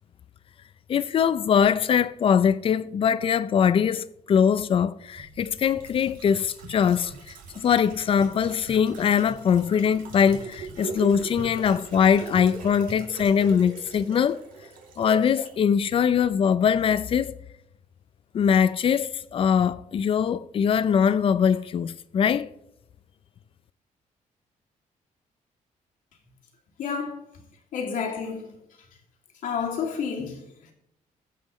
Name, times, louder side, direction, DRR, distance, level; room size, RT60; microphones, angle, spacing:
voice 1, 0.9-14.4 15.0-17.3 18.3-22.5, left 7 dB, 40° left, 0.5 m, -22 dB
sound 1, 5.2-15.5 15.8-15.9, right 4 dB, 85° right, 2.7 m, -40 dB
voice 2, 26.8-27.3 27.7-28.6 29.4-30.7, left 6 dB, 75° left, 2.4 m, -30 dB
21.0 x 7.7 x 3.1 m
cardioid pair, 160°, 14 cm